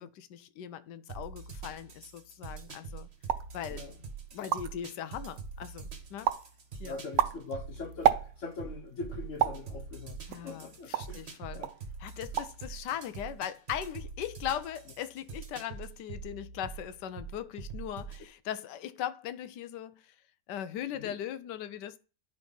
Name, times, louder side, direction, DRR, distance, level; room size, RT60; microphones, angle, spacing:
voice 1, 0.0-3.1 3.5-3.8 4.3-6.3 6.8-7.0 10.3-11.6 12.0-20.0 20.5-22.0, left 10 dB, 75° left, 1.2 m, -39 dB
sound 1, 1.1-18.2, right 5 dB, 40° right, 1.5 m, -44 dB
sound 2, 3.2-3.6 4.1-4.2 4.3-4.9 5.4-5.8 6.2-6.5 6.9-8.6 9.4-9.7 10.3-11.2 11.6-11.8 12.1-12.6 12.9-13.4, right 11 dB, 80° right, 1.3 m, -30 dB
voice 2, 6.8-11.7 20.9-21.1, left 3 dB, 55° left, 0.9 m, -42 dB
10.0 x 4.1 x 5.3 m
omnidirectional pair, 1.9 m